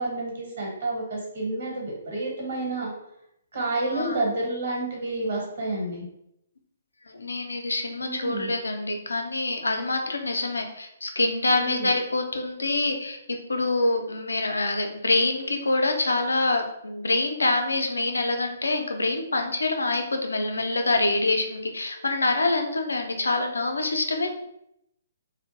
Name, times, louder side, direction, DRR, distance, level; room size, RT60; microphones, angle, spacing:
voice 1, 0.0-2.9 3.5-6.0 8.0-8.5 11.5-12.0, right 2 dB, 50° right, -3 dB, 1.1 m, -29 dB
voice 2, 3.9-4.2 7.1-24.3, left 2 dB, 70° left, 5 dB, 0.4 m, -26 dB
2.5 x 2.1 x 2.7 m, 0.79 s
figure-of-eight pair, 130°, 0 cm